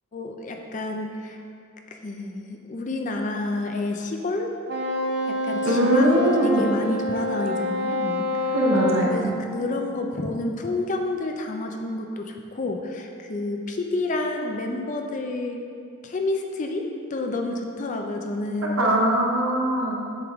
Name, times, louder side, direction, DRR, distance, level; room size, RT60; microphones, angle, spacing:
voice 1, 0.1-1.4 2.0-4.5 5.3-8.5 9.1-15.6 16.0-16.8 17.1-18.8, left 2 dB, 35° left, 3 dB, 0.4 m, -29 dB
Wind instrument woodwind instrument, 4.7-9.2, left 1 dB, 50° right, 0.6 m, -27 dB
voice 2, 5.6-6.7 8.5-9.3 18.8-19.9, right 1 dB, 70° right, -2 dB, 0.9 m, -21 dB
7.9 x 3.5 x 3.5 m, 2.4 s
head